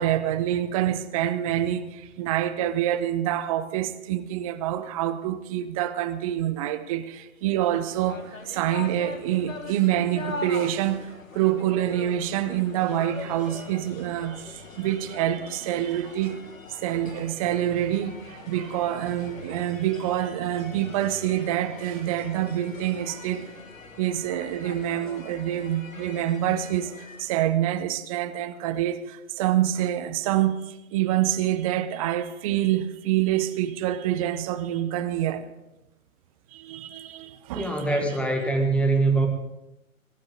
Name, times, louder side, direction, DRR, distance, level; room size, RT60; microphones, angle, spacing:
voice 1, 0.0-11.1 11.3-16.4 16.8-23.5 24.0-35.5 36.5-37.9, right 12 dB, 25° right, 0.8 m, -26 dB
sound 1, 7.7-27.5, left 4 dB, 70° left, 1.8 m, -42 dB
voice 2, 37.5-39.3, right 3 dB, 5° left, 1.4 m, -23 dB
23.0 x 12.5 x 3.9 m
figure-of-eight pair, 120°, 42 cm